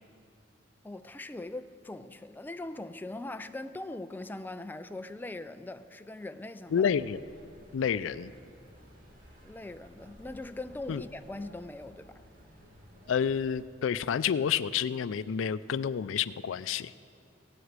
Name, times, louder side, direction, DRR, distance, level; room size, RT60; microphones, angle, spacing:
voice 1, 0.8-6.8 9.4-12.2, left 2 dB, 10° left, 0.3 m, -41 dB
sound 1, 6.6-13.6, equal, 45° right, 2.1 m, -55 dB
voice 2, 6.7-7.2 7.7-8.3 10.9-11.0 13.1-16.9, left 7 dB, 85° left, 0.4 m, -29 dB
16.5 x 7.9 x 8.1 m
head